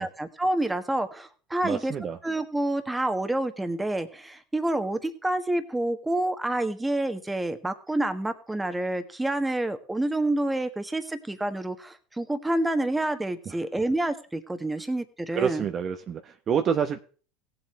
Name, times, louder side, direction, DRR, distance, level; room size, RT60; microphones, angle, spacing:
voice 1, 0.0-1.9 2.2-15.6, right 1 dB, 10° right, 9 dB, 1.5 m, -28 dB
voice 2, 1.6-2.2 13.5-13.6 15.3-17.0, right 7 dB, 40° right, 7 dB, 0.9 m, -27 dB
18.0 x 7.8 x 3.3 m, 0.40 s
hypercardioid pair, 85°, 0 cm